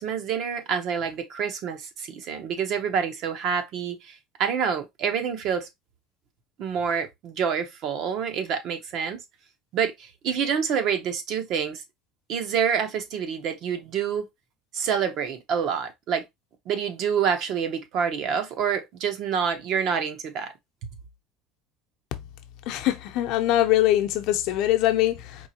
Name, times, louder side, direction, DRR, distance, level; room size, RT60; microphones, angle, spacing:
voice 1, 0.0-5.7 6.6-9.2 9.7-11.8 12.3-14.2 14.7-16.2 16.7-20.5, right 7 dB, 45° right, 0.9 m, -27 dB
voice 2, 22.7-25.5, left 14 dB, 55° left, 0.8 m, -23 dB
4.6 x 3.3 x 2.8 m
cardioid pair, 165°, 0 cm